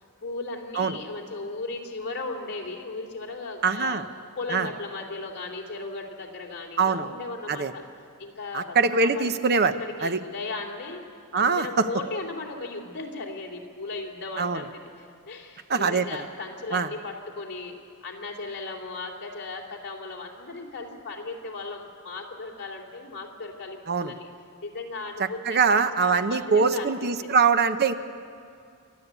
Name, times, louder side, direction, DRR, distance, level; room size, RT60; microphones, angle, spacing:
voice 1, 0.2-4.1 4.4-7.8 8.2-9.3 9.8-11.0 11.3-17.8 18.0-24.3 24.6-26.9 27.2-27.3, left 3 dB, 50° left, 1 dB, 2.9 m, -36 dB
voice 2, 3.6-4.0 4.5-4.7 6.8-7.1 7.5-7.7 8.5-10.2 11.3-11.9 14.4-14.6 15.7-16.0 16.7-16.9 23.9-24.1 25.5-27.9, right 5 dB, 50° right, 10 dB, 0.9 m, -23 dB
28.5 x 11.5 x 8.3 m, 2.4 s
head